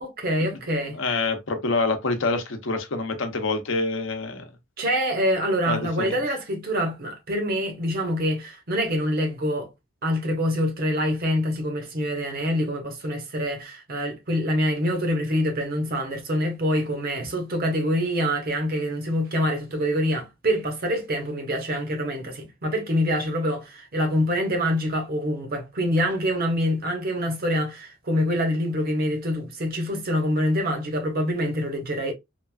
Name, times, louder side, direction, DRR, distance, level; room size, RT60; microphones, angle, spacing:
voice 1, 0.0-1.0 4.8-9.7 10.0-32.1, equal, 50° right, 0.9 m, -25 dB
voice 2, 0.9-4.4 5.7-6.2, left 3 dB, 70° left, 0.7 m, -26 dB
3.0 x 2.4 x 2.2 m
head